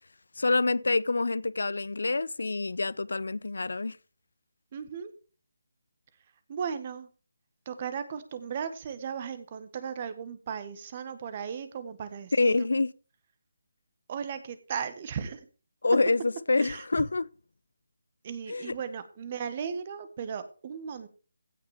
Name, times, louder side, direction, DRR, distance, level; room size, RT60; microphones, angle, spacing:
voice 1, 0.4-4.0 12.3-12.9 15.8-17.3 18.5-18.7, left 3 dB, 75° left, 0.6 m, -26 dB
voice 2, 4.7-5.1 6.5-7.1 7.6-12.7 14.1-15.5 16.6-17.0 18.2-21.1, right 7 dB, 35° right, 1.6 m, -36 dB
16.0 x 5.9 x 5.1 m
figure-of-eight pair, 160°, 0 cm